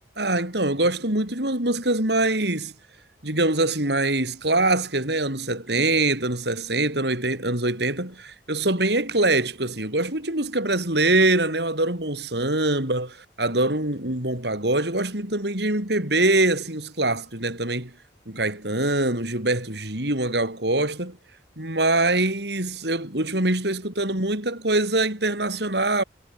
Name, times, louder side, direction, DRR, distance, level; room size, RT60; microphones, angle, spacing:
voice 1, 0.2-2.7 3.2-17.9 18.3-21.2 21.6-26.0, right 2 dB, 60° right, 5.4 m, -24 dB
head